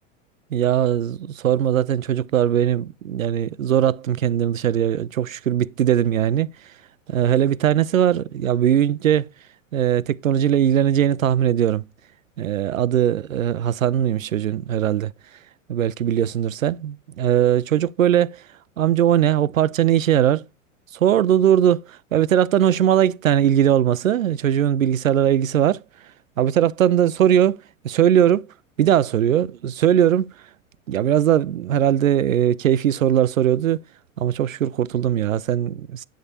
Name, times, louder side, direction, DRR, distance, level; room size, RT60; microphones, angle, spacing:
voice 1, 0.5-6.5 7.1-9.3 9.7-11.8 12.4-15.1 15.7-18.4 18.8-20.4 20.9-25.8 26.4-28.5 28.8-30.3 30.9-33.8 34.2-36.0, right 10 dB, 85° right, 0.5 m, -20 dB
9.6 x 8.9 x 2.7 m
figure-of-eight pair, 90°, 39 cm